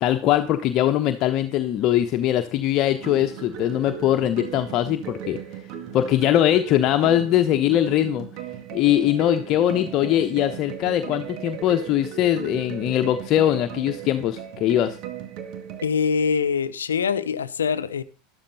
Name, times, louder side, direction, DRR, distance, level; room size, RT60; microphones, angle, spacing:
voice 1, 0.0-5.4 5.9-8.3 8.7-15.0, left 12 dB, 45° left, 1.1 m, -21 dB
sound 1, 3.0-15.8, right 9 dB, 50° right, 2.2 m, -37 dB
voice 2, 15.8-18.0, left 6 dB, 75° left, 0.8 m, -24 dB
13.0 x 12.0 x 4.1 m
figure-of-eight pair, 85°, 0 cm